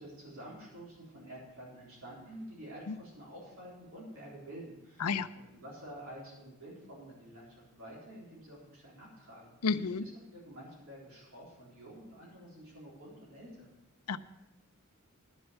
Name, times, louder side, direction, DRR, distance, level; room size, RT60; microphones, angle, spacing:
voice 1, 0.0-9.6 10.0-13.7, right 1 dB, 65° right, -6 dB, 4.0 m, -49 dB
voice 2, 9.6-10.0 14.1-14.2, left 5 dB, 85° left, 13 dB, 0.6 m, -30 dB
11.0 x 7.9 x 6.8 m, 0.92 s
head